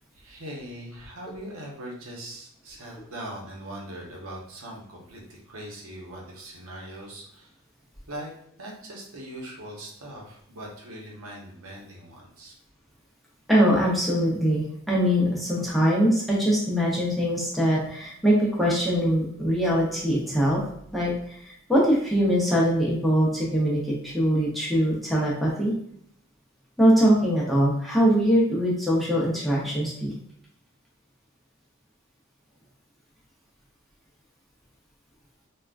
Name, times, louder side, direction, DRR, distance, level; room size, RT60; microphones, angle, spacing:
voice 1, 0.1-7.5 8.1-8.3 8.6-12.5, right 1 dB, 80° right, -2 dB, 0.8 m, -40 dB
voice 2, 13.5-20.6 20.9-21.4 21.7-25.7 26.8-30.1, equal, ahead, -6 dB, 0.6 m, -22 dB
3.5 x 2.3 x 2.4 m, 0.70 s
head